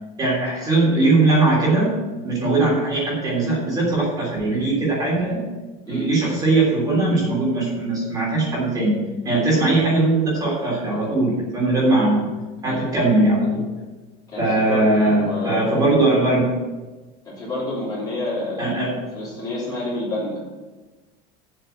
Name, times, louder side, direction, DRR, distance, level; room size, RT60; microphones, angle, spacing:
voice 1, 0.2-2.0 2.2-5.4 5.9-12.3 12.6-13.7 14.4-16.5 18.6-19.0, right 2 dB, 20° right, -4 dB, 3.3 m, -20 dB
voice 2, 14.3-15.8 17.2-18.7 19.1-20.4, left 1 dB, 20° left, -6 dB, 3.3 m, -29 dB
7.9 x 6.5 x 7.8 m, 1.2 s
cardioid pair, 170°, 17 cm